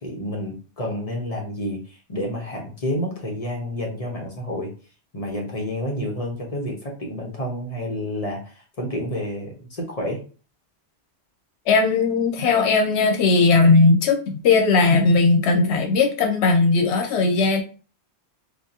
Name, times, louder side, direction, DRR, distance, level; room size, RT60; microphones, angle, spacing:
voice 1, 0.0-4.7 5.1-10.2, left 1 dB, 35° left, 0 dB, 0.9 m, -29 dB
voice 2, 11.7-17.6, left 3 dB, 85° left, 5 dB, 0.9 m, -18 dB
3.7 x 2.8 x 2.8 m, 0.37 s
omnidirectional pair, 1.1 m